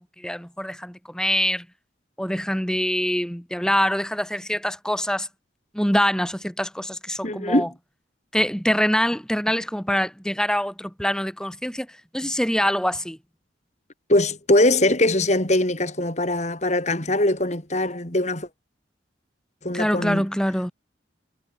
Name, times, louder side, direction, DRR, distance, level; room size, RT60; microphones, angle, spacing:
voice 1, 0.2-1.6 2.2-5.3 5.7-7.7 8.3-11.9 12.1-13.2 19.7-20.7, equal, 5° left, 3.3 m, -24 dB
voice 2, 7.2-7.7 14.1-18.5 19.6-20.2, left 1 dB, 35° left, 3.3 m, -21 dB
head